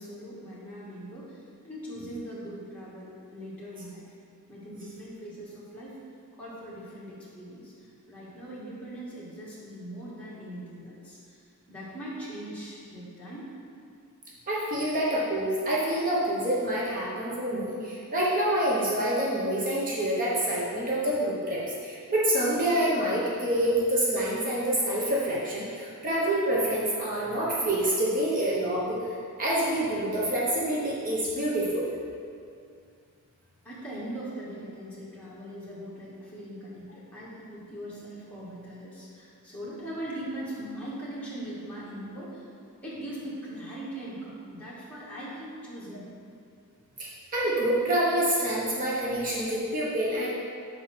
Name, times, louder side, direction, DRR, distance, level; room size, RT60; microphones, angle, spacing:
voice 1, 0.0-4.1 4.5-6.0 6.3-13.5 33.6-42.4 42.8-46.1, right 1 dB, 5° left, -9 dB, 1.7 m, -40 dB
voice 2, 14.5-29.0 29.4-31.9 47.0-50.3, right 1 dB, 40° right, -6 dB, 0.9 m, -27 dB
5.3 x 4.2 x 6.0 m, 2.4 s
head